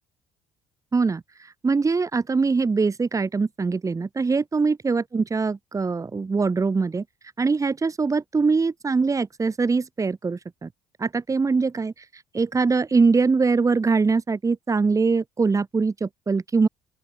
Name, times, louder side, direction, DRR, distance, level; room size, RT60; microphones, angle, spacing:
voice 1, 0.9-7.0 7.4-10.7 11.0-16.7, right 4 dB, 25° right, 3.2 m, -23 dB
open air
supercardioid pair, 75°, 12 cm